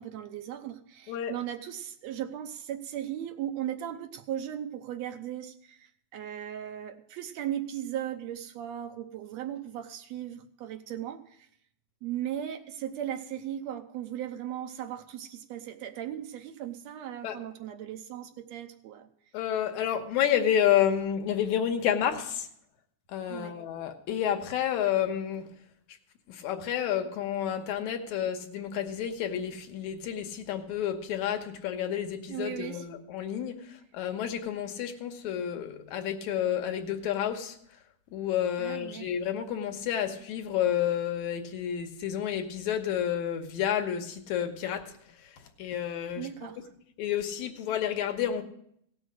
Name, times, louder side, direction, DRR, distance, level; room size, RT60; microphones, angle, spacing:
voice 1, 0.0-11.5 12.0-19.1 23.3-23.6 32.3-32.9 38.6-39.1 46.2-46.6, right 11 dB, 75° right, 7 dB, 1.8 m, -37 dB
voice 2, 19.3-22.5 23.1-25.5 26.3-37.6 38.1-44.9 45.2-45.3 45.6-46.3 47.0-48.4, left 9 dB, 80° left, 6 dB, 2.4 m, -30 dB
17.0 x 6.3 x 6.3 m, 0.70 s
omnidirectional pair, 3.3 m